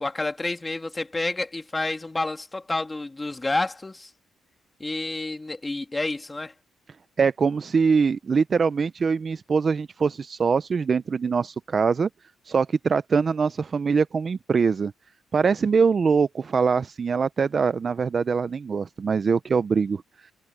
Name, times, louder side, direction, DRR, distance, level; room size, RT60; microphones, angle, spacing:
voice 1, 0.0-4.1 4.8-6.5, left 2 dB, 15° left, 1.8 m, -29 dB
voice 2, 7.2-12.1 12.5-14.9 15.3-20.0, right 5 dB, 30° right, 0.4 m, -23 dB
cardioid pair, 175°, 0 cm